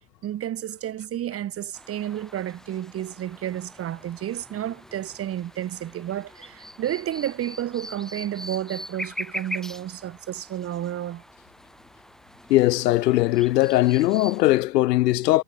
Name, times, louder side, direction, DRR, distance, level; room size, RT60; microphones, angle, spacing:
voice 1, 0.2-11.2, right 11 dB, 30° right, 1.6 m, -31 dB
sound 1, 1.7-14.4, equal, ahead, 2.7 m, -42 dB
voice 2, 12.5-15.4, left 17 dB, 80° left, 0.8 m, -20 dB
hypercardioid pair, 110°, 48 cm